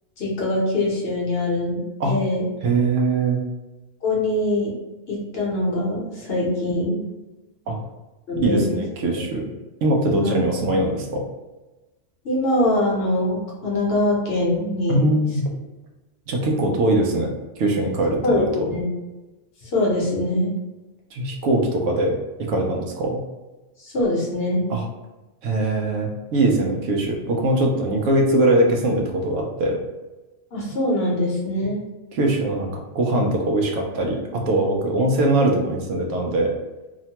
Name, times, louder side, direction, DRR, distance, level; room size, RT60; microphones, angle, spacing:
voice 1, 0.2-2.5 4.0-4.8 5.1-7.0 8.3-8.8 10.2-10.3 12.2-15.1 18.2-18.8 19.6-20.5 23.8-24.7 30.5-31.8, left 1 dB, 55° left, -4 dB, 0.9 m, -23 dB
voice 2, 2.6-3.4 7.7-7.8 8.4-9.4 9.8-11.2 14.9-15.5 16.3-17.3 17.6-18.7 21.1-22.1 22.5-23.2 24.7-24.8 25.4-29.8 32.1-32.7 32.9-36.5, right 2 dB, 80° right, 1 dB, 1.0 m, -21 dB
2.9 x 2.1 x 2.8 m, 1.1 s
omnidirectional pair, 1.3 m